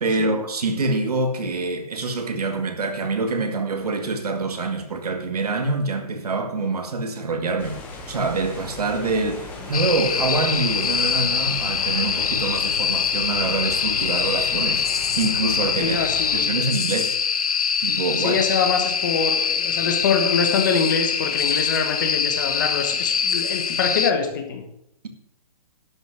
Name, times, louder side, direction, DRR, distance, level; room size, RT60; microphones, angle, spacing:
voice 1, 0.0-7.8 8.1-17.2 17.8-18.4, right 3 dB, 70° right, 2.0 m, -25 dB
sound 1, 7.6-16.4, left 3 dB, 10° left, 1.0 m, -37 dB
sound 2, 9.7-24.1, left 7 dB, 65° left, 0.8 m, -24 dB
voice 2, 15.8-16.6 18.2-24.6, left 5 dB, 30° left, 1.3 m, -24 dB
12.0 x 6.4 x 6.2 m
hypercardioid pair, 170°, 20 cm